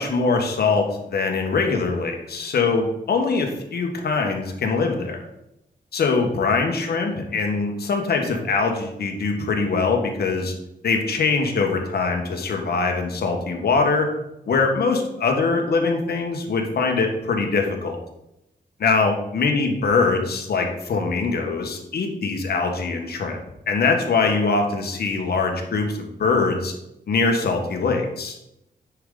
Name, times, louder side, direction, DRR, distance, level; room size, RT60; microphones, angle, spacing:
voice 1, 0.0-5.2 5.9-10.5 10.8-14.1 14.5-18.0 18.8-23.4 23.7-26.7 27.1-28.4, left 4 dB, 70° left, 3 dB, 1.3 m, -22 dB
10.0 x 4.8 x 3.8 m, 0.85 s
wide cardioid pair, 165°, 17 cm